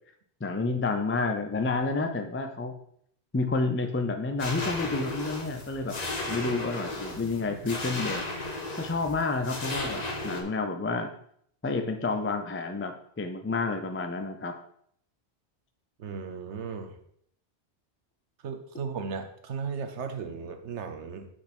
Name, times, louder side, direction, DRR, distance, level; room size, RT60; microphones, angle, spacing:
voice 1, 0.4-2.7 3.3-6.0 6.3-8.3 8.8-11.1 11.6-14.5, left 3 dB, 20° left, 6 dB, 0.4 m, -30 dB
sound 1, 4.4-10.4, left 2 dB, 40° left, 1.1 m, -35 dB
voice 2, 16.0-17.0 18.4-21.3, right 5 dB, 80° right, 7 dB, 1.2 m, -36 dB
6.2 x 5.9 x 4.3 m, 0.66 s
omnidirectional pair, 1.2 m